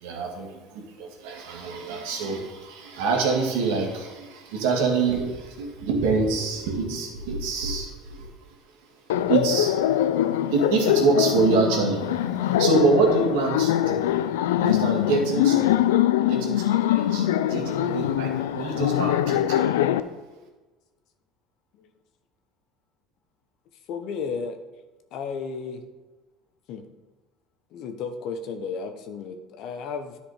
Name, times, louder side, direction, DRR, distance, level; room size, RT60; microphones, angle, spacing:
voice 1, 0.0-8.2 9.3-9.7 10.5-14.0 14.6-15.7 16.3-19.6, right 4 dB, 80° right, 0 dB, 2.0 m, -26 dB
Laughter, 9.1-20.0, left 11 dB, 90° left, 0.4 m, -23 dB
voice 2, 23.9-24.6 25.1-25.8 26.7-26.8 27.7-30.2, left 5 dB, 65° left, 8 dB, 1.0 m, -33 dB
10.0 x 5.0 x 5.0 m, 1.2 s
supercardioid pair, 85°, 0 cm